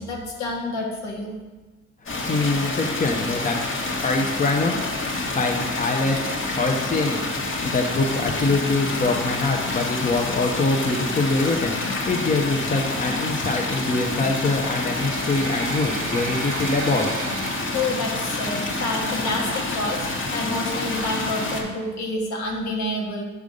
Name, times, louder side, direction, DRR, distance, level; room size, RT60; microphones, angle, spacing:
voice 1, 0.0-1.3 17.7-20.0 20.3-23.2, left 2 dB, 70° left, -1 dB, 1.5 m, -28 dB
sound 1, 2.1-21.6, left 2 dB, 45° left, 1.4 m, -28 dB
voice 2, 2.3-3.6 4.0-4.8 5.3-6.2 6.5-7.3 7.6-17.1, left 3 dB, 25° left, 1 dB, 0.8 m, -24 dB
sound 2, 13.6-18.7, right 7 dB, 70° right, 0.6 m, -37 dB
6.6 x 3.5 x 5.2 m, 1.2 s
supercardioid pair, 65°, 29 cm